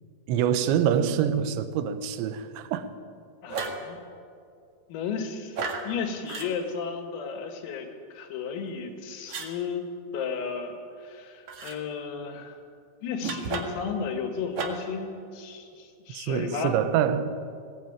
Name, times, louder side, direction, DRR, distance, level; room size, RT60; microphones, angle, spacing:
voice 1, 0.3-2.9 16.1-17.3, right 9 dB, 75° right, 3.1 m, -25 dB
voice 2, 3.4-4.0 4.9-12.6 13.0-16.8, left 6 dB, 85° left, 4.7 m, -34 dB
sound 1, 3.5-3.9 5.5-5.9 6.3-6.5 9.3-9.5 11.5-11.8 13.2-13.9 14.5-14.9, right 4 dB, 55° right, 2.2 m, -33 dB
21.0 x 18.0 x 9.0 m
omnidirectional pair, 5.9 m